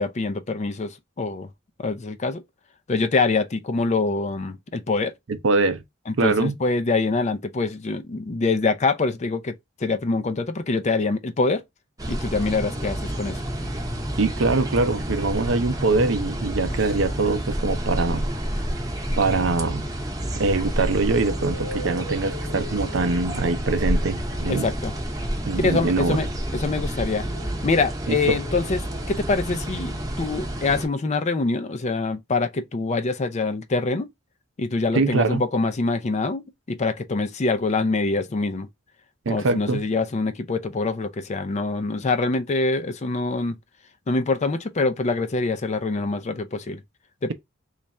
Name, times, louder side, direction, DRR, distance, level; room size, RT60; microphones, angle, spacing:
voice 1, 0.0-1.5 1.8-2.4 2.9-5.1 6.1-9.5 9.8-11.6 12.1-13.4 24.5-24.9 25.6-26.3 26.6-27.3 27.6-34.1 34.6-38.7 39.3-43.6 44.1-46.8 47.2-47.3, left 3 dB, 35° left, 0.4 m, -25 dB
voice 2, 5.3-5.8 6.2-6.6 14.2-18.3 19.2-19.8 20.4-24.7 25.5-26.2 28.1-28.4 34.9-35.4 39.3-39.9, right 3 dB, 65° right, 0.6 m, -23 dB
sound 1, 12.0-30.9, equal, 15° right, 0.7 m, -29 dB
sound 2, 20.2-20.5 21.3-26.6 27.0-31.0, equal, 70° left, 0.9 m, -43 dB
3.3 x 2.4 x 4.1 m
head